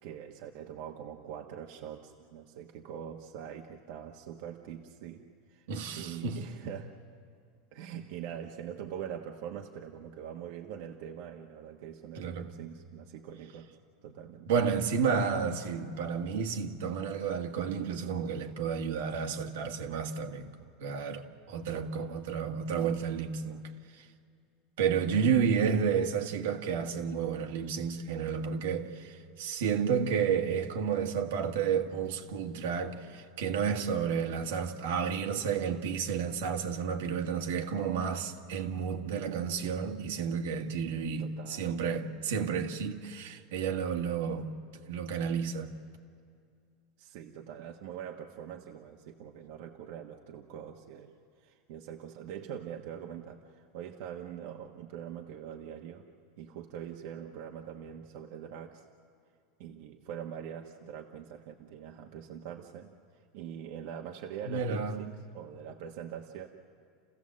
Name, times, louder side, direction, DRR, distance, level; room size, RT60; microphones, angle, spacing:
voice 1, 0.0-5.2 5.5-5.7 6.0-6.9 7.7-13.8 14.0-14.5 21.7-22.3 25.0-25.3 34.0-34.4 41.2-41.7 47.0-51.1 51.4-56.1 56.4-58.9 59.6-62.9 63.3-66.5, right 9 dB, 65° right, 1.2 m, -43 dB
voice 2, 5.7-6.4 12.1-12.5 14.5-20.5 20.8-23.7 24.0-24.1 24.8-44.5 44.9-45.7 64.4-65.0, right 6 dB, 85° right, 1.7 m, -31 dB
30.0 x 15.5 x 7.5 m
supercardioid pair, 145°, 0 cm